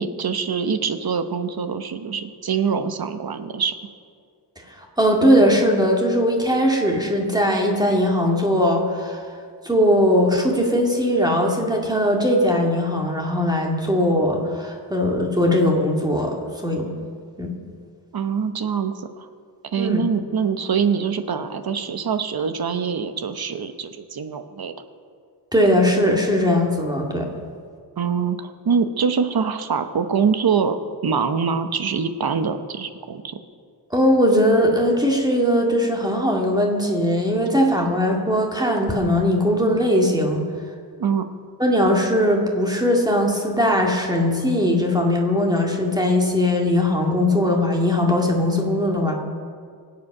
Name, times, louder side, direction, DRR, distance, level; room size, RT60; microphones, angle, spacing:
voice 1, 0.0-3.8 18.1-19.3 19.7-24.7 28.0-33.4 41.0-41.3, right 6 dB, 60° right, 9 dB, 1.0 m, -24 dB
voice 2, 5.0-9.2 9.6-16.9 17.4-17.5 19.8-20.0 25.5-27.3 33.9-40.4 41.6-49.1, equal, 10° right, 0 dB, 2.2 m, -20 dB
23.5 x 8.3 x 6.0 m, 2.2 s
wide cardioid pair, 135°, 41 cm